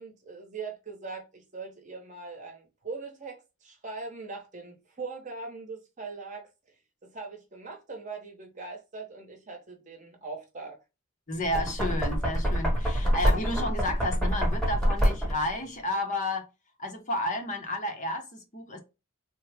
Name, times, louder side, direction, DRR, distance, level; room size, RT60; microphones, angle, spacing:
voice 1, 0.0-6.5 7.0-10.8, right 4 dB, 35° right, 0.8 m, -41 dB
voice 2, 11.3-16.5 16.8-18.8, left 1 dB, 35° left, 0.7 m, -31 dB
Knock, 11.4-15.5, equal, ahead, 0.9 m, -26 dB
3.4 x 2.0 x 3.3 m
head